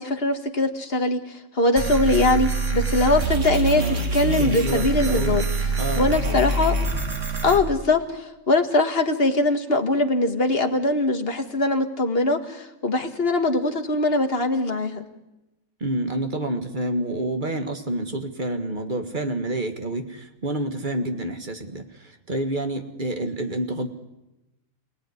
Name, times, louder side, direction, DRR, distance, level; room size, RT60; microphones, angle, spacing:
voice 1, 0.0-5.5 5.9-6.8 7.4-15.0, left 2 dB, 45° left, 5 dB, 2.0 m, -22 dB
sound 1, 1.8-7.6, right 3 dB, 65° right, 2.7 m, -25 dB
voice 2, 4.3-5.5 5.8-6.4 15.8-21.9 22.3-23.9, right 1 dB, 35° right, 6 dB, 2.1 m, -28 dB
27.5 x 18.0 x 9.8 m, 0.98 s
omnidirectional pair, 1.4 m